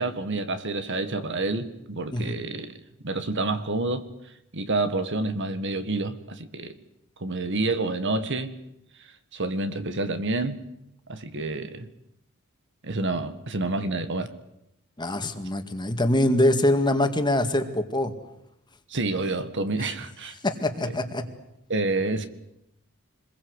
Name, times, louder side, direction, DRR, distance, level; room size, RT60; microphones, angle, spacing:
voice 1, 0.0-2.8 3.0-4.1 4.5-6.7 7.2-8.6 9.3-10.7 11.1-11.9 12.8-14.3 18.9-20.4 20.8-20.9 21.7-22.3, right 2 dB, 55° right, 1.8 m, -28 dB
voice 2, 15.0-18.1 20.4-21.2, left 1 dB, 20° left, 2.0 m, -24 dB
26.5 x 21.5 x 8.1 m
head